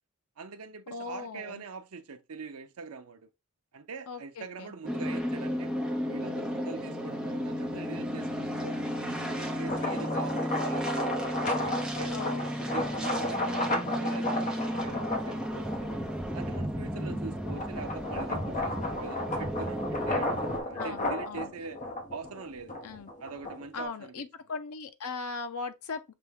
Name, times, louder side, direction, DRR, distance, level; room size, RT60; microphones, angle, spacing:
voice 1, 0.4-3.3 3.7-5.7 6.1-8.8 9.1-11.3 11.6-15.9 16.3-21.8 22.1-22.7 23.2-24.2, right 4 dB, 75° right, 0.6 m, -43 dB
voice 2, 0.9-1.6 4.1-4.7 12.1-12.7 17.0-17.3 20.7-21.5 22.8-23.1 23.7-26.1, left 4 dB, 75° left, 0.6 m, -39 dB
sound 1, 4.8-20.6, equal, 5° right, 0.7 m, -33 dB
sound 2, 9.5-16.1 16.6-23.8, left 1 dB, 35° left, 0.9 m, -33 dB
5.9 x 2.2 x 3.5 m
head